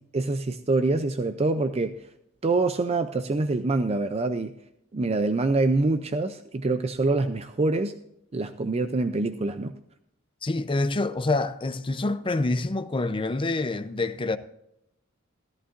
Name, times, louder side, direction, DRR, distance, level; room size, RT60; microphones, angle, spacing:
voice 1, 0.1-2.0 2.4-4.5 4.9-7.9 8.3-9.7, right 3 dB, 30° right, 0.5 m, -25 dB
voice 2, 10.4-14.4, left 2 dB, 25° left, 0.6 m, -26 dB
14.0 x 14.0 x 2.5 m
head